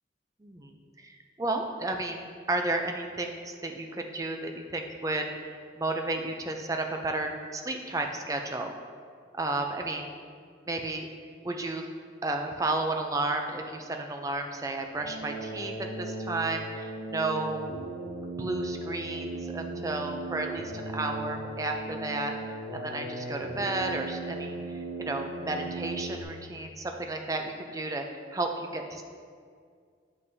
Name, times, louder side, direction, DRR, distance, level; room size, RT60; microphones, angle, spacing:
voice 1, 0.4-0.7 1.0-8.7 9.3-10.1 10.7-11.1 11.4-11.9 12.2-17.7 18.4-22.3 22.7-29.0, right 2 dB, 15° right, 3 dB, 0.4 m, -32 dB
sound 1, 14.9-26.2, right 2 dB, 85° right, 1.3 m, -37 dB
9.2 x 5.4 x 2.7 m, 2.1 s
head